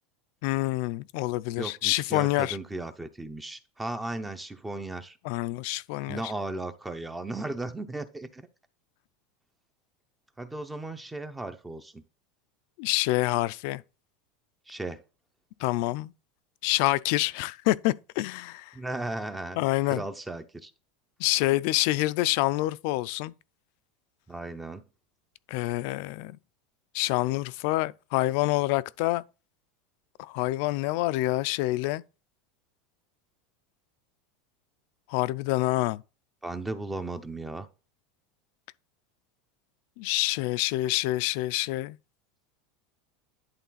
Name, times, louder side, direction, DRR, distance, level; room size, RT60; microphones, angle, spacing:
voice 1, 0.4-2.6 5.2-6.2 12.8-13.8 15.6-16.1 16.6-18.7 19.6-20.0 21.2-23.3 25.5-26.4 26.9-29.2 30.2-32.0 35.1-36.0 40.0-42.0, left 18 dB, 55° left, 0.4 m, -27 dB
voice 2, 1.6-5.2 6.1-8.4 10.4-12.0 14.7-15.0 18.7-19.6 19.9-20.7 24.3-24.8 36.4-37.7, right 2 dB, 5° right, 0.5 m, -36 dB
10.5 x 3.8 x 4.0 m
supercardioid pair, 165°, 0 cm